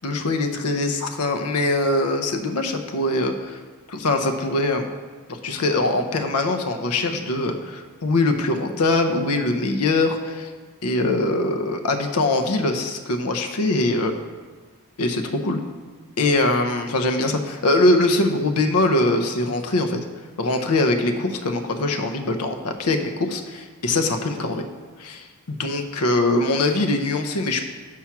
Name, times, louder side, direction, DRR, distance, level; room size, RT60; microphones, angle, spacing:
voice 1, 0.0-3.6 3.9-4.9 5.3-10.5 10.8-14.1 15.0-15.6 16.2-20.0 20.4-24.6 25.0-27.7, left 2 dB, 80° left, 5 dB, 0.8 m, -22 dB
6.2 x 5.7 x 5.9 m, 1.4 s
head